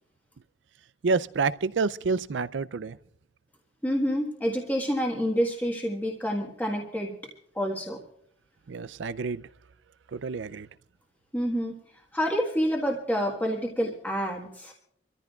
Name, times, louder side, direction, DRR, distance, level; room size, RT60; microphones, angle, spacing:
voice 1, 1.0-3.0 8.7-9.5 10.1-10.7, right 4 dB, 70° right, 0.5 m, -28 dB
voice 2, 3.8-7.1 7.5-8.0 11.3-11.8 12.1-14.7, equal, 10° left, 1.5 m, -28 dB
25.5 x 14.0 x 2.4 m
head